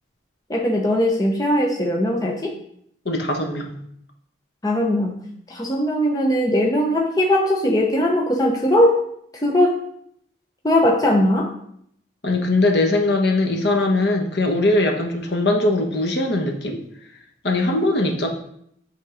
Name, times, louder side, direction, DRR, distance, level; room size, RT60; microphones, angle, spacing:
voice 1, 0.5-2.5 4.6-5.1 5.5-9.0 9.4-9.8 10.6-11.5, left 1 dB, 20° left, -1 dB, 0.7 m, -19 dB
voice 2, 3.0-3.7 12.2-16.8 17.4-18.3, left 2 dB, 60° left, 2 dB, 1.2 m, -20 dB
8.2 x 3.6 x 4.9 m, 0.71 s
head